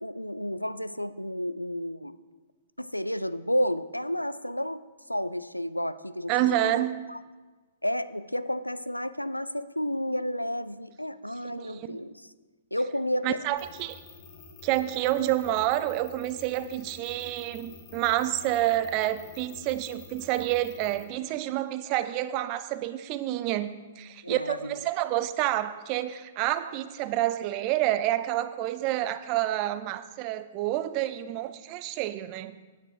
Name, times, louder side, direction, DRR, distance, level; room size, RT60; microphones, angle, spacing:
voice 1, 0.0-2.1 2.8-4.8 5.1-6.7 7.1-7.2 7.8-12.3 12.7-13.4 24.2-24.8, equal, 85° left, 14 dB, 0.4 m, -31 dB
voice 2, 6.3-7.1 11.4-12.0 13.2-14.0 14.6-32.6, right 14 dB, 35° right, 12 dB, 0.5 m, -28 dB
sound 1, 13.6-21.0, left 4 dB, 30° left, 1.8 m, -49 dB
9.5 x 8.0 x 4.7 m, 1.3 s
figure-of-eight pair, 110°, 0 cm